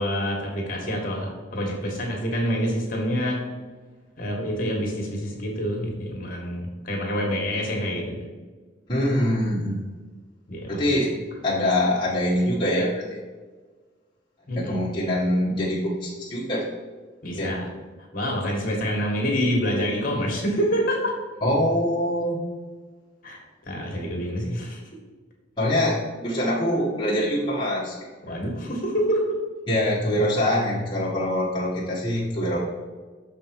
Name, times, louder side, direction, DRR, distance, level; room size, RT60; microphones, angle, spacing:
voice 1, 0.0-3.5 4.2-8.1 10.5-10.9 14.5-14.8 17.2-17.6 18.1-21.1 23.2-24.8 28.2-29.2, equal, 45° left, 0 dB, 1.8 m, -27 dB
voice 2, 8.9-9.8 10.7-11.2 11.4-13.2 14.6-16.7 17.4-17.6 21.4-22.4 25.6-28.0 28.3-28.4 29.7-32.6, left 1 dB, 25° left, -7 dB, 1.4 m, -24 dB
6.6 x 5.3 x 4.6 m, 1.4 s
head